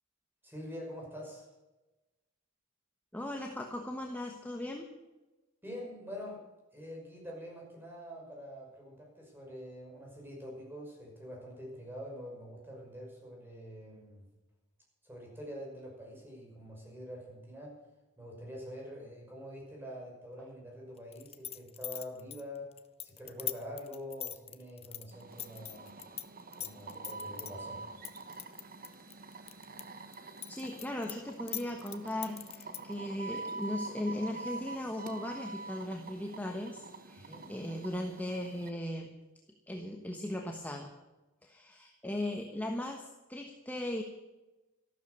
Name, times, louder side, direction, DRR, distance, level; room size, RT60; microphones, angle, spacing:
voice 1, 0.4-1.5 5.6-6.4 6.7-14.3 15.0-17.8 18.2-25.9 26.6-27.8 37.2-37.5, equal, 10° right, -1 dB, 5.9 m, -45 dB
voice 2, 3.1-4.9 30.5-39.1 39.7-40.9 41.4-44.0, left 1 dB, 10° left, 3 dB, 1.2 m, -38 dB
sound 1, 21.1-26.2 26.5-27.5 28.0-29.8 30.1-32.9, left 11 dB, 30° left, 0.8 m, -40 dB
sound 2, 25.1-38.7, right 3 dB, 45° right, 1.3 m, -46 dB
14.0 x 12.5 x 6.7 m, 1.1 s
head